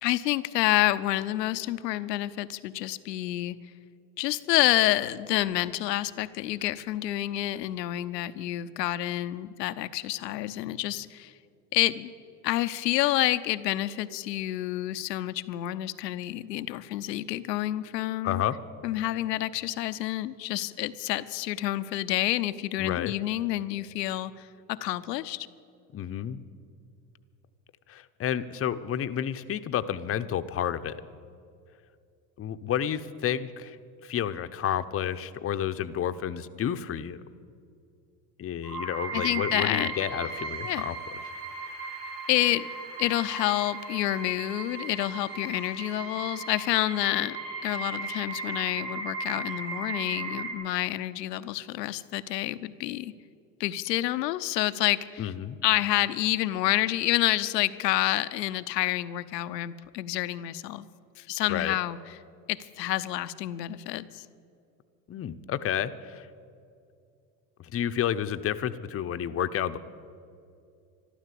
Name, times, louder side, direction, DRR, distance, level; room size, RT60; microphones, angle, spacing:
voice 1, 0.0-3.6 4.2-11.3 11.7-12.1 12.4-18.4 18.8-25.5 39.1-39.9 40.6-40.9 42.3-42.7 43.0-47.4 47.6-53.1 53.6-55.3 55.6-60.9 61.2-62.0 62.5-64.3, left 15 dB, 85° left, 13 dB, 0.7 m, -28 dB
voice 2, 18.2-18.6 22.8-23.1 25.9-26.4 27.9-31.0 32.4-33.8 34.0-37.2 38.4-40.9 55.2-55.6 61.5-61.8 65.1-66.3 67.6-69.8, left 10 dB, 30° left, 11 dB, 0.7 m, -30 dB
sound 1, 38.6-50.5, right 4 dB, 85° right, 3.1 m, -36 dB
13.0 x 12.0 x 8.4 m, 2.4 s
hypercardioid pair, 80°, 48 cm